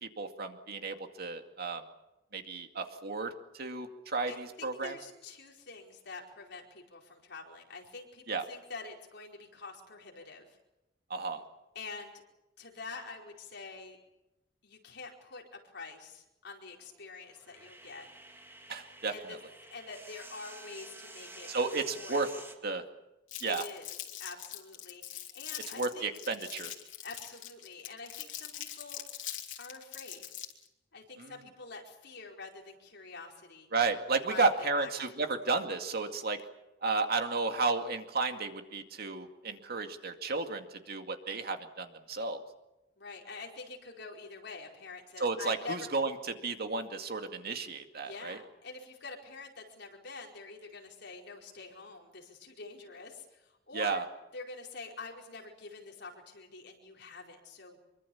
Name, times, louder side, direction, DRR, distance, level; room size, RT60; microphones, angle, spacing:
voice 1, 0.0-1.8 2.3-4.9 8.3-8.4 11.1-11.4 18.7-19.1 21.5-22.3 22.6-22.8 23.4-23.6 25.8-26.7 31.2-31.3 33.7-36.4 36.8-42.4 45.2-46.1 46.4-48.4 53.7-54.0, right 3 dB, 55° right, 6 dB, 2.2 m, -33 dB
voice 2, 4.3-10.6 11.7-12.1 12.6-14.0 14.6-18.1 19.1-19.4 19.7-21.5 21.9-22.5 23.4-23.9 24.2-26.1 27.0-29.0 29.6-30.2 30.9-33.7 34.3-35.1 37.5-37.7 43.0-45.9 48.0-54.0 54.3-57.8, left 4 dB, 65° left, 0 dB, 4.8 m, -46 dB
sound 1, 16.8-22.5, right 2 dB, 15° right, 2.3 m, -50 dB
Crumpling crinkling, 23.3-30.7, left 11 dB, 80° left, 3.2 m, -43 dB
25.0 x 23.5 x 7.2 m, 0.94 s
head